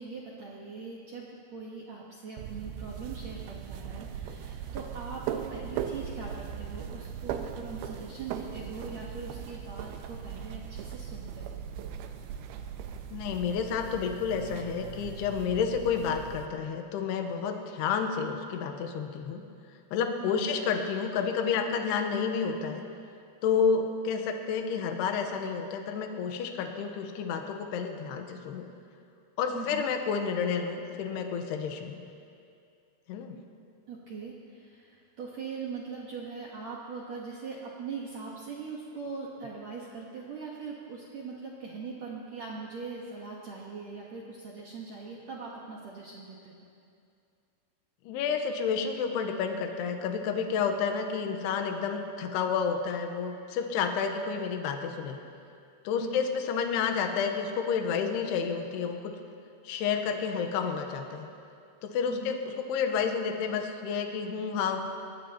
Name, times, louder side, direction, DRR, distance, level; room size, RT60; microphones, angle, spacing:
voice 1, 0.0-11.6 20.2-20.5 29.5-29.9 33.9-46.6 56.0-56.3 62.1-62.4, right 5 dB, 70° right, -4 dB, 1.6 m, -41 dB
sound 1, 2.4-16.5, right 8 dB, 90° right, 3.0 m, -39 dB
voice 2, 13.1-19.4 19.9-22.8 23.4-28.6 29.4-32.0 33.1-33.3 48.1-55.2 55.8-59.0 59.6-61.3 61.8-62.4 62.7-64.8, left 6 dB, 80° left, 4 dB, 2.9 m, -30 dB
22.5 x 18.5 x 2.9 m, 2.4 s
omnidirectional pair, 5.0 m